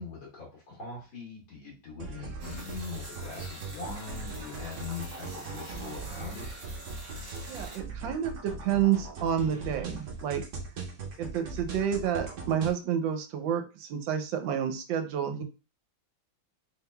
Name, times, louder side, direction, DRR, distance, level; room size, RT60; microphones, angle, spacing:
voice 1, 0.0-6.5, left 4 dB, 75° left, -4 dB, 2.3 m, -41 dB
sound 1, 2.0-12.7, right 3 dB, 60° right, 0.8 m, -40 dB
sound 2, 2.4-7.8, right 1 dB, 45° right, 1.4 m, -46 dB
voice 2, 7.5-10.4 11.2-15.4, right 9 dB, 75° right, 7 dB, 1.3 m, -29 dB
4.1 x 3.6 x 2.2 m, 0.32 s
omnidirectional pair, 2.2 m